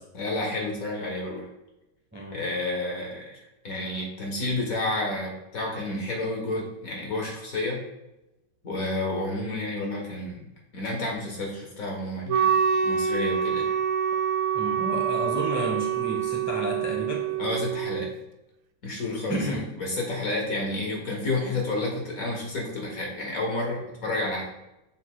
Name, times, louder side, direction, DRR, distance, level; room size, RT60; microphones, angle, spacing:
voice 1, 0.1-1.5 2.3-3.4 3.6-7.8 8.6-10.5 10.7-13.7 17.4-18.1 18.8-24.5, left 2 dB, 50° left, -1 dB, 1.5 m, -30 dB
Wind instrument woodwind instrument, 12.3-18.1, right 7 dB, 85° right, 1.4 m, -26 dB
voice 2, 14.5-17.3 19.3-19.6, equal, 10° right, -1 dB, 0.7 m, -31 dB
7.0 x 6.7 x 2.3 m, 0.93 s
omnidirectional pair, 2.1 m